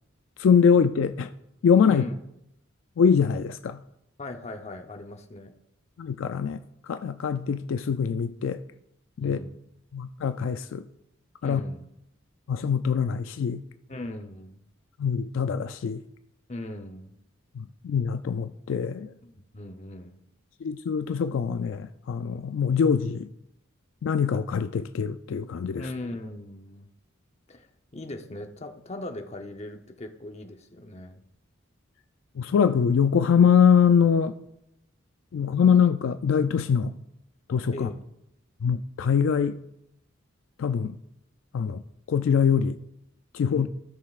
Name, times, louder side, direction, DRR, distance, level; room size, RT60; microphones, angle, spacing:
voice 1, 0.4-1.3 1.6-2.0 3.0-3.8 6.0-6.6 6.9-8.6 9.2-9.4 9.9-10.8 11.4-11.6 12.5-13.6 15.0-16.0 17.8-19.1 20.6-23.3 24.0-25.9 32.4-34.3 35.3-36.9 37.5-37.9 38.6-39.6 40.6-41.0 41.5-41.8 42.1-42.8 43.3-43.7, left 7 dB, 65° left, 0.3 m, -23 dB
voice 2, 4.2-5.5 9.2-9.6 11.4-11.9 13.9-14.6 16.5-17.1 19.2-20.2 25.7-26.9 27.5-27.7 27.9-31.2 37.7-38.0 43.5-43.7, left 1 dB, 30° left, 0.7 m, -39 dB
16.5 x 6.5 x 2.4 m
head